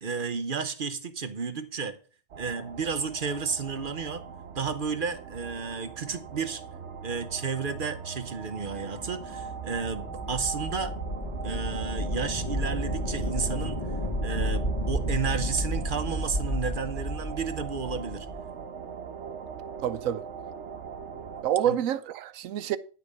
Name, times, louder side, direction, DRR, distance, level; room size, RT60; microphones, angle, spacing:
voice 1, 0.0-2.0 2.4-4.2 4.5-6.6 7.0-11.0 11.4-13.8 14.2-18.3 21.6-21.8, right 5 dB, 45° right, 0.9 m, -32 dB
sound 1, 2.3-21.4, right 6 dB, 60° right, 1.1 m, -41 dB
sound 2, 8.4-18.5, equal, 30° left, 1.3 m, -32 dB
voice 2, 19.8-20.2 21.4-22.8, right 10 dB, 85° right, 1.1 m, -27 dB
10.5 x 5.3 x 6.6 m
omnidirectional pair, 1.4 m